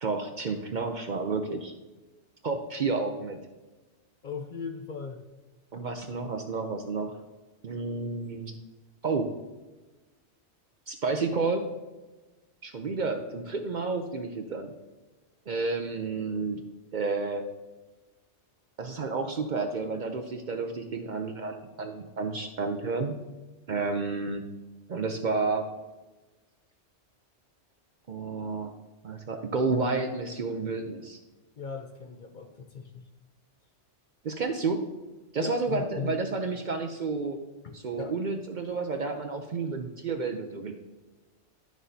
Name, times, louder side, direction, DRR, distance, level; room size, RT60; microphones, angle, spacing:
voice 1, 0.0-1.7 2.4-3.4 5.7-7.1 7.6-8.5 9.0-9.3 10.9-11.6 12.6-14.7 15.5-16.6 16.9-17.4 18.8-23.2 23.7-24.4 24.9-25.7 28.1-28.7 29.0-31.2 34.2-34.8 35.3-37.4 37.7-40.7, right 4 dB, 50° right, 5 dB, 0.6 m, -30 dB
voice 2, 4.2-5.2 31.6-33.0 35.4-36.2 37.6-38.2, left 5 dB, 50° left, 4 dB, 0.7 m, -38 dB
11.0 x 6.2 x 2.7 m, 1.2 s
omnidirectional pair, 1.2 m